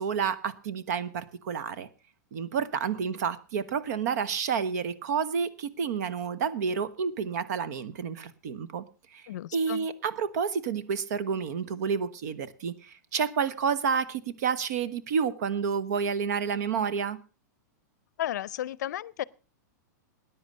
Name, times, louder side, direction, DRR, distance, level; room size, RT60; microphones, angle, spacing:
voice 1, 0.0-1.9 2.3-8.8 9.1-9.2 9.5-17.2, right 6 dB, 60° right, 1.1 m, -30 dB
voice 2, 9.3-9.9 18.2-19.2, left 12 dB, 70° left, 0.5 m, -33 dB
13.5 x 9.8 x 5.3 m
supercardioid pair, 150°, 10 cm